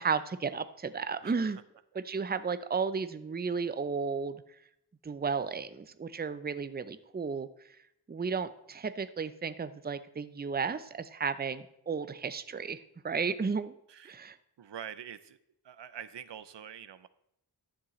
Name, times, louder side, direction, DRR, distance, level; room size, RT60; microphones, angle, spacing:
voice 1, 0.0-1.6 2.0-4.4 5.0-7.5 8.1-12.8 13.0-13.7 14.0-14.4, right 5 dB, 25° right, 13 dB, 0.5 m, -33 dB
voice 2, 13.9-14.2 14.6-15.4 15.6-17.1, right 9 dB, 90° right, 14 dB, 0.5 m, -45 dB
11.5 x 7.4 x 3.1 m, 0.77 s
wide cardioid pair, 55°, 41 cm